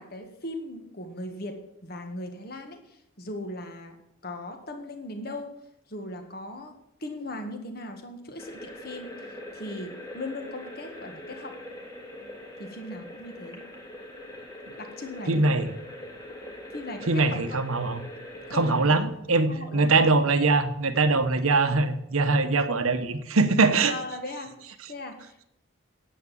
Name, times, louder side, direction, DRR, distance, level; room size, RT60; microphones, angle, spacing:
voice 1, 0.0-4.0 4.2-5.5 5.9-6.7 7.0-11.6 12.6-13.7 14.8-15.5 16.7-17.6 18.5-19.1 19.5-20.2 23.9-25.4, left 1 dB, 45° left, 6 dB, 1.7 m, -38 dB
sound 1, 8.4-18.9, left 1 dB, 15° left, 2.0 m, -42 dB
voice 2, 15.3-15.7 17.1-18.0 18.5-23.9, right 3 dB, 90° right, 9 dB, 1.1 m, -22 dB
10.0 x 8.1 x 7.5 m, 0.78 s
head